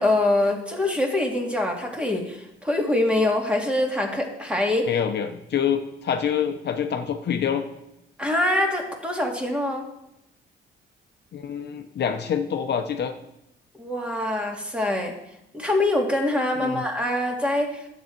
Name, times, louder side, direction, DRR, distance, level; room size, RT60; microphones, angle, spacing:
voice 1, 0.0-4.9 8.2-9.9 13.8-15.1 15.5-17.8, left 1 dB, 5° right, 1 dB, 2.1 m, -24 dB
voice 2, 4.9-7.6 11.3-13.1 16.6-16.8, left 8 dB, 60° left, 6 dB, 0.8 m, -26 dB
11.0 x 8.0 x 4.5 m, 0.85 s
cardioid pair, 90°, 20 cm